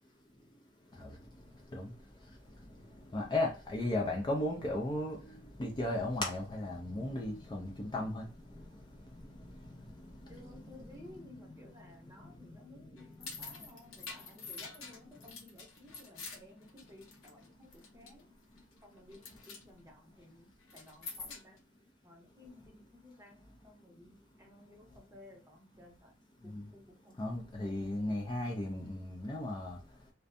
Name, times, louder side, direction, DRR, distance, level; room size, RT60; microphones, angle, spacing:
voice 1, 3.1-8.3 9.1-9.4 10.1-10.4 10.7-11.1 26.5-26.6 27.2-29.8, left 1 dB, 20° left, 0.4 m, -35 dB
voice 2, 10.3-18.3 18.8-21.6 22.0-26.1 26.4-27.2 27.6-27.8, left 1 dB, 15° right, 0.7 m, -56 dB
sound 1, 13.0-17.5 17.7-18.2 18.6-18.8 19.1-19.6 20.6-21.6, left 4 dB, 80° left, 0.7 m, -47 dB
2.5 x 2.2 x 2.5 m
head